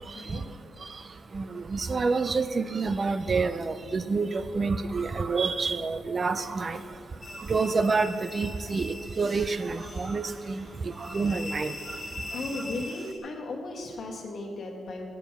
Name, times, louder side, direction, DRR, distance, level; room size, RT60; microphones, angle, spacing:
voice 1, 0.1-0.4 12.0-15.1, left 2 dB, 55° left, 0 dB, 1.4 m, -36 dB
voice 2, 1.7-6.8 7.5-8.8 9.2-10.2 11.1-11.7, right 4 dB, 35° right, 12 dB, 0.3 m, -27 dB
sound 1, 7.2-13.2, left 2 dB, 30° left, 1.3 m, -42 dB
9.1 x 7.0 x 5.8 m, 2.4 s
wide cardioid pair, 155°, 0 cm